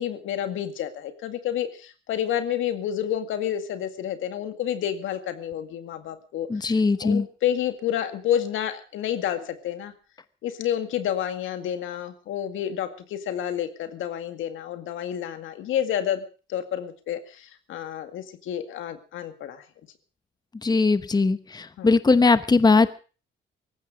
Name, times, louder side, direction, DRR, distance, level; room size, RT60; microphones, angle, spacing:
voice 1, 0.0-6.7 7.0-9.9 10.4-16.2 16.5-19.6 21.8-21.9, left 10 dB, 85° left, 9 dB, 2.1 m, -29 dB
voice 2, 6.5-7.3 20.6-22.9, left 3 dB, 20° left, 13 dB, 1.0 m, -20 dB
18.5 x 15.0 x 5.0 m, 0.38 s
cardioid pair, 90°, 20 cm